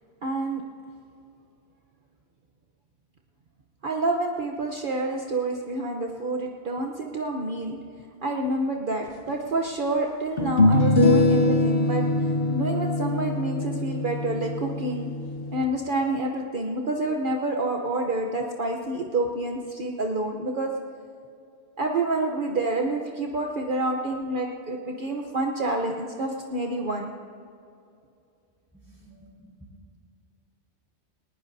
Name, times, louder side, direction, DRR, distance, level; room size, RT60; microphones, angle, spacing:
voice 1, 0.2-0.6 3.8-7.8 8.2-12.0 12.5-15.1 15.5-20.7 21.8-27.1, right 2 dB, 50° right, 1 dB, 1.1 m, -28 dB
sound 1, 9.3-9.4 10.4-15.6, left 2 dB, 60° left, 1.1 m, -23 dB
voice 2, 28.7-30.0, right 1 dB, 10° left, -4 dB, 4.0 m, -52 dB
21.0 x 19.5 x 2.7 m, 2.5 s
omnidirectional pair, 1.1 m